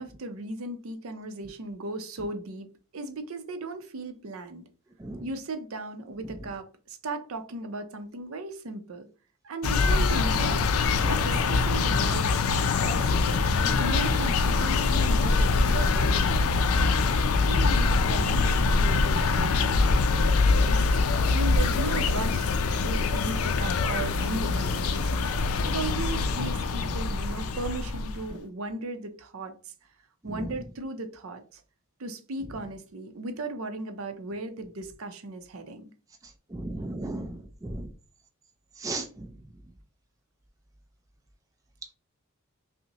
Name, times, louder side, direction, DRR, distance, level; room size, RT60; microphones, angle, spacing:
voice 1, 0.0-4.6 5.2-9.1 9.4-10.7 11.0-16.7 17.5-20.0 20.7-22.5 22.8-25.3 25.6-29.7 30.2-31.6 32.0-35.9, right 2 dB, 70° right, 0.5 m, -36 dB
sound 1, 9.6-28.3, left 4 dB, 75° left, 0.4 m, -24 dB
voice 2, 36.5-37.9 38.8-39.3, right 2 dB, 15° right, 0.4 m, -35 dB
5.3 x 2.1 x 2.9 m
head